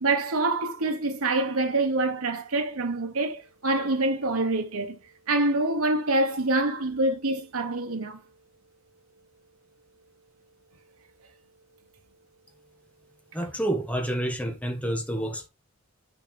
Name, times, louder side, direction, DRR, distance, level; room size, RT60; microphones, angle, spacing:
voice 1, 0.0-5.0 5.3-8.2, right 2 dB, 85° right, 1.2 m, -26 dB
voice 2, 13.3-15.5, right 1 dB, 5° left, 1.7 m, -29 dB
9.0 x 4.9 x 3.5 m
head